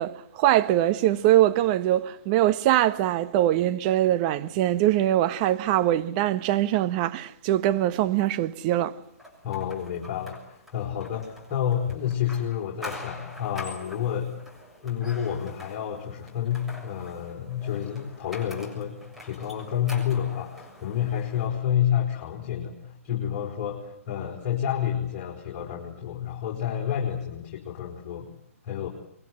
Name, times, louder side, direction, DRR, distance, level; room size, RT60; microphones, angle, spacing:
voice 1, 0.0-8.9, right 13 dB, 35° right, 1.2 m, -22 dB
sound 1, 9.2-21.5, left 2 dB, 5° right, 7.0 m, -45 dB
voice 2, 9.4-14.3 14.8-28.3 28.6-28.9, left 9 dB, 35° left, 4.9 m, -29 dB
25.0 x 23.0 x 9.5 m
figure-of-eight pair, 130°, 8 cm